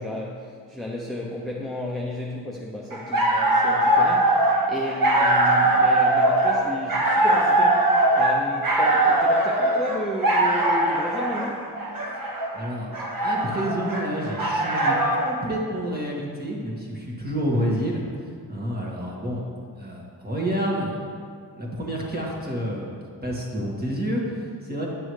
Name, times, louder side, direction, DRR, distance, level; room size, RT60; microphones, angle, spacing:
voice 1, 0.0-11.7, left 1 dB, ahead, -3 dB, 0.7 m, -33 dB
sound 1, 2.9-15.3, right 1 dB, 50° right, 1.2 m, -21 dB
voice 2, 12.5-12.9 13.2-15.0 15.2-18.1 18.5-19.4 19.8-21.1 21.5-22.9 23.2-24.9, equal, 20° right, -3 dB, 1.8 m, -29 dB
9.9 x 6.1 x 3.2 m, 2.2 s
cardioid pair, 80°, 43 cm